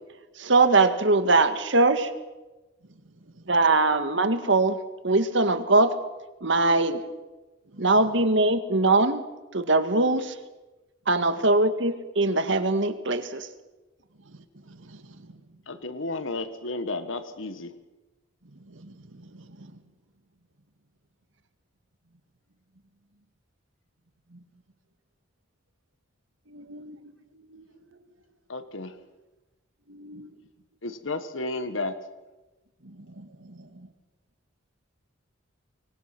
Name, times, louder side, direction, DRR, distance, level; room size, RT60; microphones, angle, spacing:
voice 1, 0.4-2.1 3.5-4.8 5.0-6.0 6.4-7.0 7.8-9.2 9.5-10.4 11.1-13.5, right 2 dB, 65° right, 1.9 m, -21 dB
voice 2, 2.8-3.6 7.7-7.9 14.2-15.6 18.4-19.8 24.3-24.4 26.5-28.1 29.9-30.4 32.8-33.9, right 1 dB, 85° right, 2.0 m, -49 dB
voice 3, 15.7-17.8 28.5-28.9 30.8-32.0, left 2 dB, 80° left, 1.5 m, -32 dB
25.5 x 22.5 x 6.1 m
head